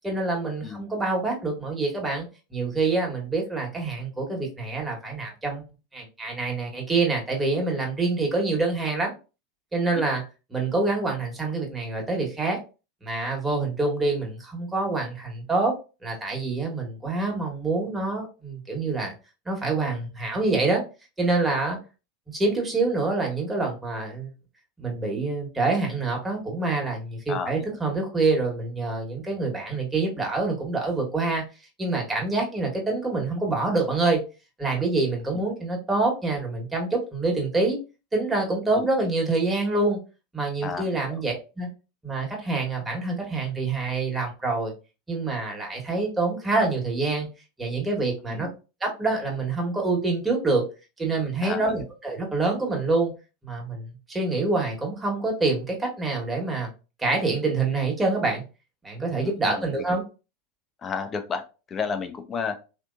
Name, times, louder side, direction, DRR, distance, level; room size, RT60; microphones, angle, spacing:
voice 1, 0.0-5.6 5.9-9.1 9.7-10.2 10.5-12.6 13.0-15.8 16.0-19.1 19.4-20.8 21.2-21.8 22.3-24.3 24.8-31.4 31.8-34.2 34.6-37.8 38.1-40.0 40.3-41.7 42.0-44.7 45.1-47.3 47.6-48.5 48.8-50.6 51.0-53.1 53.4-56.7 57.0-58.4 58.8-60.0, right 3 dB, 15° right, 0 dB, 1.3 m, -26 dB
voice 2, 27.3-27.8 35.3-35.5 38.7-39.1 40.6-41.2 48.3-48.5 51.4-51.9 59.2-59.9 60.8-61.4 61.7-62.6, left 5 dB, 30° left, 7 dB, 0.6 m, -33 dB
3.3 x 2.8 x 2.5 m, 0.31 s
hypercardioid pair, 90°, 0 cm